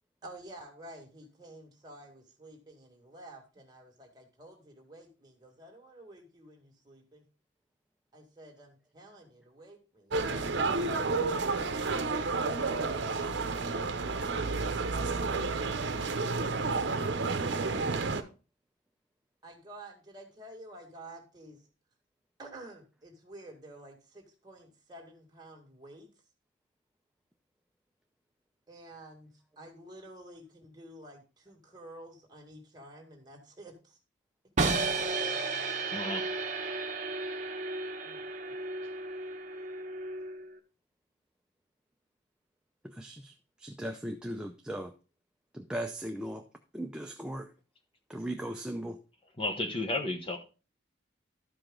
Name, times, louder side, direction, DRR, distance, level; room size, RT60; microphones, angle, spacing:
voice 1, 0.2-7.2 8.1-11.3 19.4-21.6 22.4-26.1 28.7-34.0 38.0-38.5, right 1 dB, 20° right, 0 dB, 1.8 m, -51 dB
sound 1, 10.1-18.2, right 3 dB, 65° right, 0.8 m, -30 dB
sound 2, 34.6-40.5, right 3 dB, 40° right, 1.0 m, -33 dB
voice 2, 35.9-36.2 49.4-50.4, left 2 dB, 30° left, 3 dB, 1.0 m, -32 dB
voice 3, 43.0-43.3 43.6-44.9 45.5-46.4 46.7-47.5 48.1-49.0, right 1 dB, 5° right, 3 dB, 0.5 m, -37 dB
12.5 x 5.0 x 3.8 m, 0.33 s
head